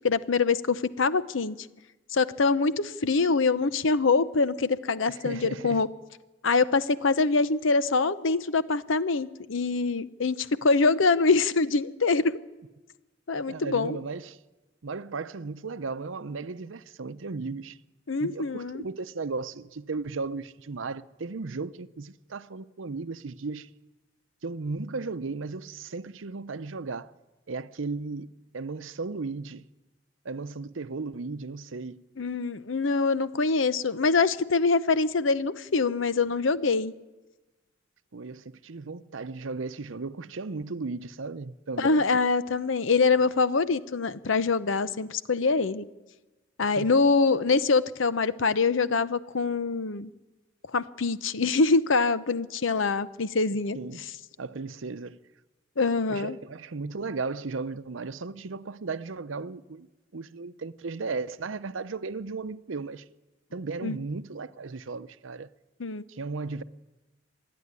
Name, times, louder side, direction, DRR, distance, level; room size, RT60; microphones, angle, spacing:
voice 1, 0.0-1.6 2.1-5.9 6.4-12.4 13.3-14.0 18.1-18.8 32.2-36.9 41.8-45.8 46.6-50.1 50.7-53.8 55.8-56.4 63.8-64.0 65.8-66.0, left 4 dB, 75° left, 0.8 m, -24 dB
voice 2, 5.1-5.8 13.5-14.4 14.8-17.8 18.2-23.7 24.4-27.1 27.5-28.3 28.5-29.6 30.2-32.0 38.1-42.0 46.6-46.9 53.7-54.1 54.4-55.2 56.1-59.9 60.1-63.0 63.5-65.5 66.1-66.6, right 4 dB, 80° right, 0.7 m, -35 dB
26.0 x 10.5 x 9.7 m
head